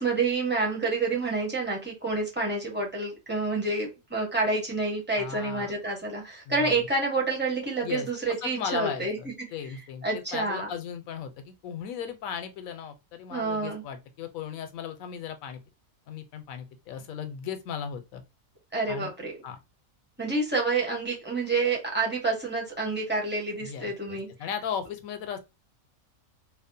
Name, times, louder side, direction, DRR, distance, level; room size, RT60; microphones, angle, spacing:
voice 1, 0.0-9.2 10.0-10.7 13.3-13.8 18.7-19.3 20.2-24.3, right 3 dB, 10° right, 0.6 m, -28 dB
voice 2, 5.1-5.7 6.5-6.9 7.8-8.1 8.4-15.6 16.1-18.2 18.9-19.1 19.4-19.6 23.6-25.4, left 7 dB, 80° left, 1.0 m, -36 dB
2.7 x 2.1 x 2.5 m
omnidirectional pair, 1.5 m